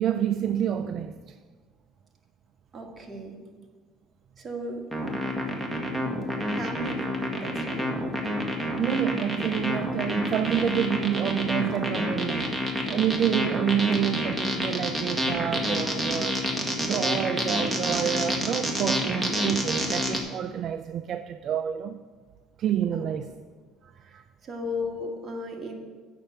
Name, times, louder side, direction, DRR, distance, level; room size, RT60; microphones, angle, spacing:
voice 1, 0.0-1.4 8.8-16.4 16.8-22.0 22.6-23.3 23.8-24.2, right 10 dB, 55° right, 0.4 m, -28 dB
voice 2, 2.7-3.4 4.4-5.2 6.6-7.9 22.9-23.1 24.0-25.7, left 1 dB, 30° right, 2.0 m, -36 dB
sound 1, 4.9-20.2, equal, 5° right, 1.8 m, -28 dB
8.6 x 6.6 x 7.8 m
supercardioid pair, 100°, 0 cm